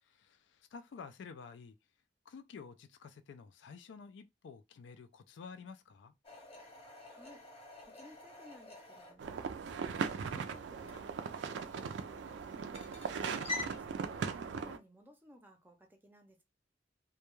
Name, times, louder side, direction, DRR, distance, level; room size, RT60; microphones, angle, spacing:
voice 1, 0.0-1.7 2.3-6.1, left 5 dB, 80° left, 0.3 m, -51 dB
sound 1, 6.2-13.8, left 3 dB, 35° left, 0.7 m, -48 dB
voice 2, 7.1-7.4 7.8-9.5 9.8-11.1 11.5-12.8 13.2-14.3 14.5-16.4, equal, 10° right, 0.5 m, -58 dB
sound 2, 9.2-14.8, right 5 dB, 75° right, 0.4 m, -39 dB
2.2 x 2.2 x 3.0 m
head